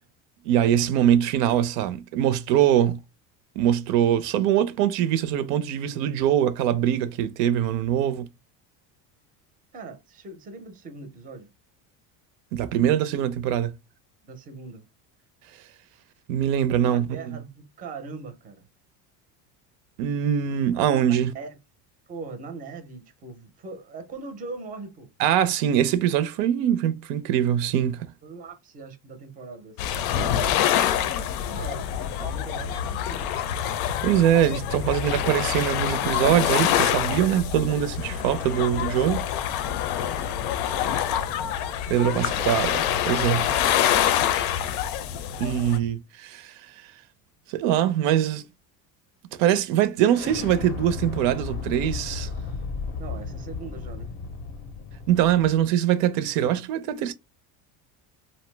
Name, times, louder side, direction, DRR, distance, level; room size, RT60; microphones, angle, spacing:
voice 1, 0.4-3.0 3.6-8.3 12.5-13.7 16.3-17.4 20.0-21.3 25.2-28.1 34.0-39.3 41.9-43.5 45.4-46.9 47.5-48.4 49.4-52.3 55.1-57.1, right 10 dB, 70° right, 0.5 m, -23 dB
voice 2, 9.7-11.5 14.2-14.9 16.8-18.6 21.1-21.6 22.1-25.1 28.2-33.3 40.2-41.6 53.0-54.1, right 4 dB, 20° right, 0.5 m, -41 dB
sound 1, 29.8-45.8, left 10 dB, 85° left, 0.6 m, -26 dB
Explosion, 50.1-55.6, left 4 dB, 30° left, 0.5 m, -34 dB
2.6 x 2.1 x 3.2 m
cardioid pair, 140°, 43 cm